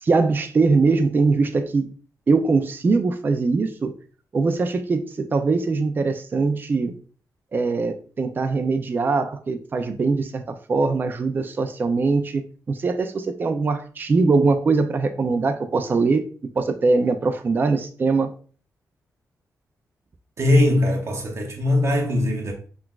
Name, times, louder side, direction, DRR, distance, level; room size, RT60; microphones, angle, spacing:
voice 1, 0.0-1.9 2.3-3.9 4.3-6.9 7.5-12.4 12.7-16.3 16.6-18.3, right 4 dB, 30° right, 0.3 m, -22 dB
voice 2, 20.4-22.5, left 1 dB, 50° right, 0.7 m, -20 dB
5.8 x 2.3 x 2.3 m
wide cardioid pair, 145°, 6 cm